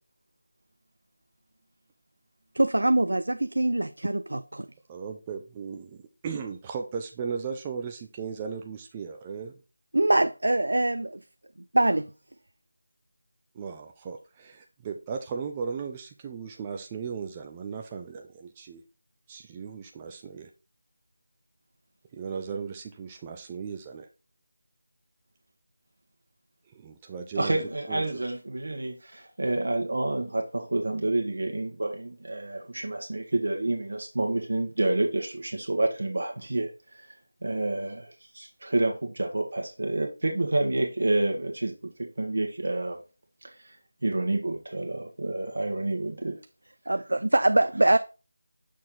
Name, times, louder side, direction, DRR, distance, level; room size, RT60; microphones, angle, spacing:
voice 1, 2.5-4.7 9.9-11.2 11.7-12.1 46.9-48.0, right 1 dB, 85° right, 0.4 m, -23 dB
voice 2, 4.9-6.0 6.2-9.5 13.5-18.8 19.3-20.5 22.1-24.1 26.7-27.6 27.9-28.0, right 6 dB, 15° right, 0.5 m, -36 dB
voice 3, 27.3-37.1 37.4-43.0 43.4-43.8 44.0-46.4, right 2 dB, 65° right, 1.4 m, -29 dB
6.4 x 4.4 x 3.7 m
figure-of-eight pair, 175°, 0 cm